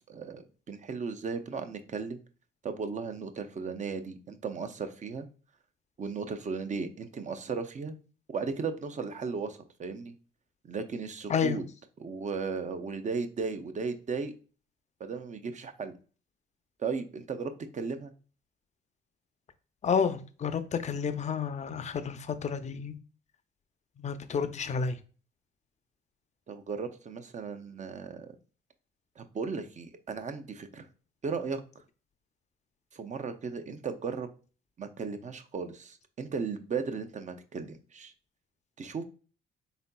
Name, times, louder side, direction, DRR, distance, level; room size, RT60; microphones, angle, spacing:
voice 1, 0.1-2.2 2.6-5.3 6.0-7.9 8.3-10.1 10.6-11.6 12.0-14.3 15.0-15.9 16.8-18.1 26.5-28.3 29.2-30.8 31.2-31.6 32.9-34.3 34.8-38.1 38.8-39.0, right 5 dB, 35° right, 0.6 m, -36 dB
voice 2, 11.3-11.6 19.8-23.0 24.0-25.0, left 6 dB, 35° left, 0.5 m, -30 dB
4.1 x 3.8 x 2.2 m
cardioid pair, 90°, 20 cm